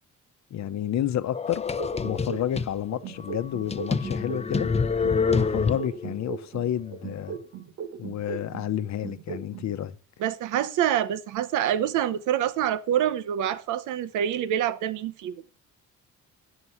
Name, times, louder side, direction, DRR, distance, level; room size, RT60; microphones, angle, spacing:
voice 1, 0.5-1.7 2.0-4.7 5.0-7.4 8.0-10.0, left 10 dB, 65° left, 0.9 m, -30 dB
sound 1, 1.3-2.7 3.2-3.3 3.7-6.1, left 5 dB, 20° left, 0.6 m, -26 dB
sound 2, 1.8-4.7 5.0-8.7 9.0-9.7, right 8 dB, 60° right, 1.3 m, -38 dB
voice 2, 10.2-15.3, right 10 dB, 90° right, 0.8 m, -26 dB
9.6 x 6.1 x 5.7 m
cardioid pair, 90°, 30 cm